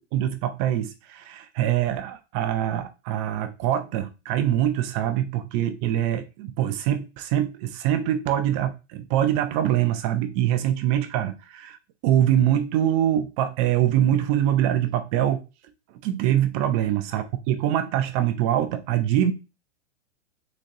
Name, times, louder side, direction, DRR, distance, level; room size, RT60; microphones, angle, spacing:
voice 1, 0.1-11.8 12.0-15.4 16.0-19.3, right 11 dB, 30° right, 0.4 m, -24 dB
3.9 x 3.1 x 2.6 m
hypercardioid pair, 115°, 36 cm